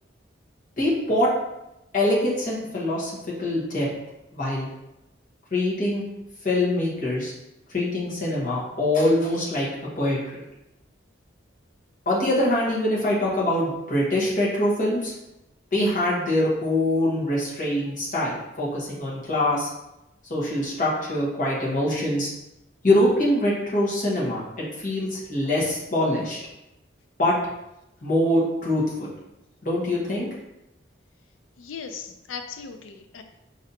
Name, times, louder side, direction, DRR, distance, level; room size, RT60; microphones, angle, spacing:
voice 1, 0.8-1.3 1.9-3.9 4.3-4.7 5.5-6.0 6.4-7.3 7.7-9.7 10.0-10.4 12.1-15.1 15.7-19.7 20.3-22.3 22.8-26.4 27.2-27.3 28.0-29.1 29.6-30.3, left 1 dB, 40° left, -6 dB, 1.1 m, -24 dB
voice 2, 31.6-33.2, left 6 dB, 90° left, 7 dB, 0.4 m, -38 dB
5.0 x 2.7 x 2.8 m, 0.90 s
head